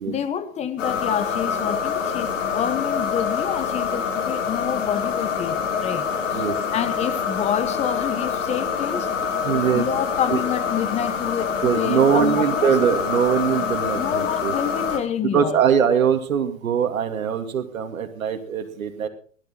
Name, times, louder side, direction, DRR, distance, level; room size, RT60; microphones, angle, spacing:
voice 1, 0.1-6.4 6.7-12.7 13.6-15.6, left 9 dB, 15° left, 1.1 m, -28 dB
sound 1, 0.8-15.0, left 6 dB, 65° left, 4.1 m, -26 dB
voice 2, 9.4-9.9 10.3-10.4 11.6-14.5 15.3-19.1, right 7 dB, 85° right, 2.6 m, -22 dB
17.0 x 12.0 x 4.4 m
hypercardioid pair, 140°, 40 cm